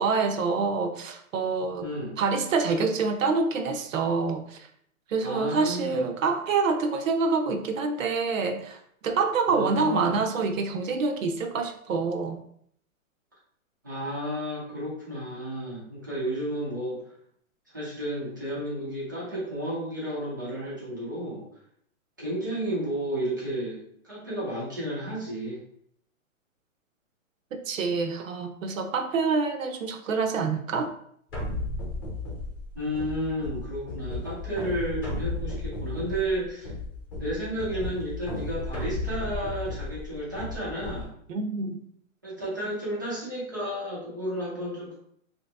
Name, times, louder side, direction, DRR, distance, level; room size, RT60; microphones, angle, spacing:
voice 1, 0.0-1.9 2.2-4.6 5.1-12.4 27.5-30.9 41.3-41.8, right 4 dB, 70° right, 6 dB, 0.7 m, -26 dB
voice 2, 1.8-2.2 5.2-6.0 9.5-10.2 13.8-17.0 17.7-21.4 22.2-25.6 32.7-36.7 37.2-41.1 42.2-45.0, right 1 dB, 15° right, -7 dB, 0.4 m, -32 dB
sound 1, 31.3-41.0, left 2 dB, 20° left, 0.8 m, -34 dB
3.0 x 2.8 x 3.3 m, 0.67 s
hypercardioid pair, 170°, 41 cm